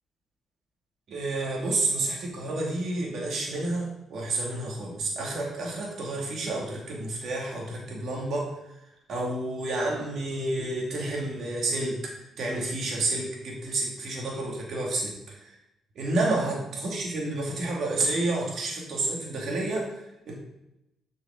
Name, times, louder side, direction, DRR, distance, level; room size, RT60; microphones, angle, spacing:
voice 1, 1.1-8.5 9.1-15.5 16.0-20.3, right 2 dB, 65° right, -2 dB, 2.2 m, -30 dB
7.0 x 5.5 x 3.8 m, 0.88 s
cardioid pair, 90°, 0 cm